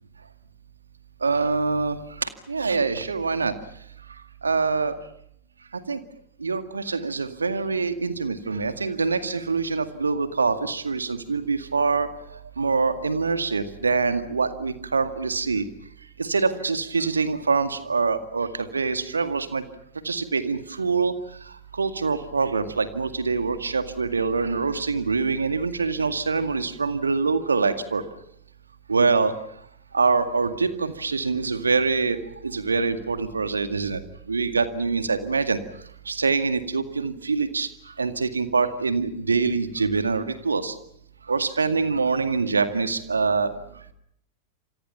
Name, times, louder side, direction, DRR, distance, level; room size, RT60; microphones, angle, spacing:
voice 1, 1.2-3.5 4.4-5.0 5.9-6.0 6.4-12.1 12.6-15.7 16.2-19.6 20.0-21.1 21.8-28.0 28.9-29.3 29.9-32.2 32.4-34.0 34.3-35.6 36.1-37.7 38.0-40.7 41.3-43.5, right 4 dB, 75° right, 10 dB, 2.1 m, -24 dB
29.5 x 27.0 x 5.8 m, 0.71 s
figure-of-eight pair, 90°, 0 cm